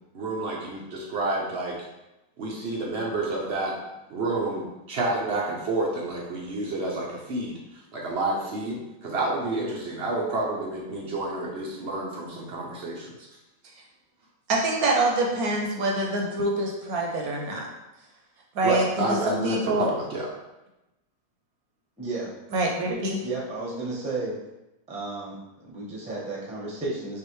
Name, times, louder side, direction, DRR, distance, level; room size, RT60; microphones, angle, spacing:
voice 1, 0.1-1.8 2.4-3.7 4.1-13.1 18.6-20.3, right 2 dB, 90° right, -3 dB, 0.5 m, -29 dB
voice 2, 14.5-17.7 18.6-19.2 19.4-19.9 22.5-23.2, right 2 dB, 65° right, 0 dB, 0.9 m, -25 dB
voice 3, 22.0-22.3 23.2-24.3 24.9-27.2, right 3 dB, 10° right, -5 dB, 0.4 m, -33 dB
5.9 x 2.5 x 3.1 m, 0.98 s
omnidirectional pair, 2.0 m